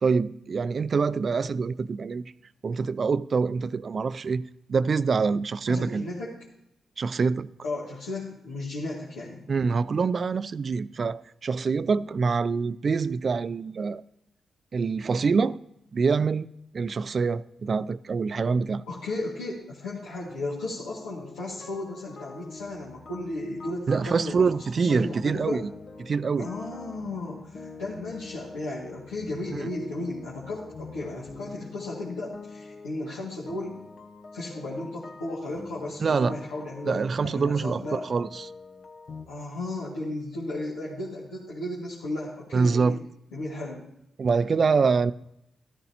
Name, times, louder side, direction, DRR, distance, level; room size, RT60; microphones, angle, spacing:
voice 1, 0.0-2.2 2.6-6.1 7.0-7.5 9.5-14.0 14.7-15.6 15.9-16.5 16.7-18.8 23.9-25.7 26.0-26.5 29.5-29.7 36.0-36.4 36.8-38.5 42.5-43.0 44.2-45.1, right 5 dB, 55° right, 0.4 m, -25 dB
voice 2, 5.7-6.3 7.6-9.5 18.9-25.6 26.4-33.8 34.3-38.1 39.3-43.0 43.3-43.8, left 2 dB, 90° left, 2.0 m, -35 dB
sound 1, 20.3-39.3, left 3 dB, 65° left, 0.9 m, -45 dB
13.5 x 13.0 x 2.9 m
supercardioid pair, 45°, 0 cm